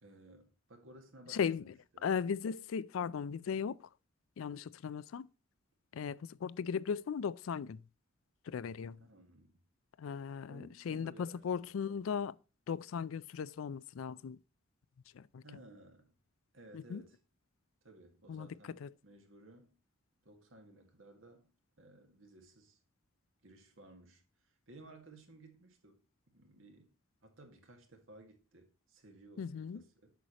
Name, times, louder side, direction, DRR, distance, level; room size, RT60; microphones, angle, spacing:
voice 1, 0.0-2.1 9.0-9.6 10.5-12.0 15.4-16.2 16.5-17.2 17.8-19.8 20.2-21.5 21.8-22.8 23.4-24.2 24.7-26.0 26.3-26.9 27.2-30.1, right 1 dB, 70° right, 1.8 m, -58 dB
voice 2, 1.3-1.7 2.0-3.9 4.4-5.3 5.9-7.8 8.5-9.0 10.0-12.3 12.7-14.4 15.1-15.4 16.7-17.0 18.3-18.5 18.8-18.9 29.4-29.8, left 6 dB, 75° left, 0.4 m, -37 dB
8.1 x 6.4 x 2.9 m
head